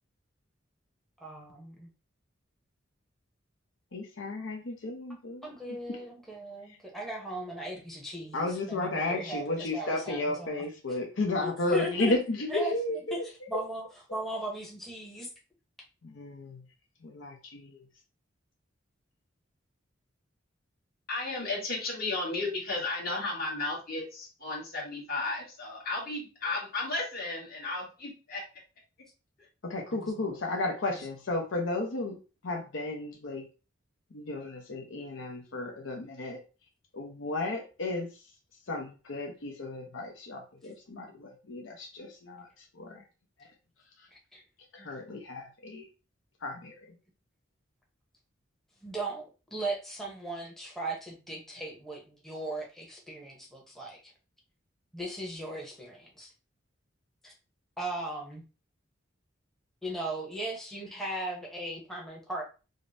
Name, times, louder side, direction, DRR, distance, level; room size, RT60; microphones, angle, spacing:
voice 1, 1.2-1.9 5.4-10.6 10.9-11.0 11.4-12.1 12.5-13.2 13.5-13.8 14.1-15.3 29.9-30.3 30.9-31.0 44.3-44.4 44.8-44.9 48.8-54.1 54.9-56.3 57.2-57.3 57.8-58.4 59.8-62.4, right 1 dB, ahead, -2 dB, 0.8 m, -37 dB
voice 2, 3.9-5.5 5.9-6.0 8.3-13.2 13.5-13.6 16.0-16.6 17.0-17.8 29.6-32.2 32.4-33.4 34.1-36.4 36.9-38.1 38.7-43.0 44.7-45.9 46.4-46.9, left 2 dB, 70° left, 2 dB, 0.6 m, -33 dB
voice 3, 21.1-28.4, left 2 dB, 50° left, -3 dB, 1.5 m, -34 dB
5.0 x 2.0 x 2.6 m, 0.33 s
head